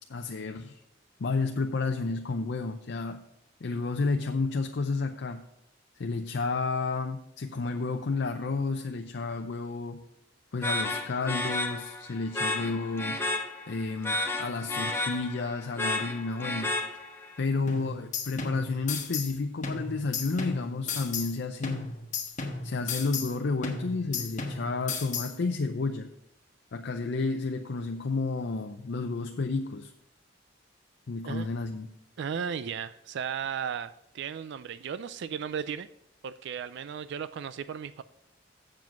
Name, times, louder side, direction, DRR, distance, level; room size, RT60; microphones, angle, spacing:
voice 1, 0.1-0.8 1.2-3.2 3.6-5.4 6.0-10.0 10.5-13.2 13.7-16.7 17.4-21.9 22.6-26.1 26.7-29.9 31.1-31.9, left 3 dB, 65° left, 4 dB, 0.6 m, -31 dB
sound 1, 10.6-17.3, left 2 dB, 15° left, 1.0 m, -32 dB
sound 2, 17.7-19.4 19.6-21.4 21.6-23.4 23.6-25.4, left 5 dB, 40° left, 1.3 m, -35 dB
voice 2, 32.2-35.9 36.2-38.0, right 7 dB, 65° right, 13 dB, 0.3 m, -35 dB
7.6 x 7.3 x 5.8 m, 0.80 s
head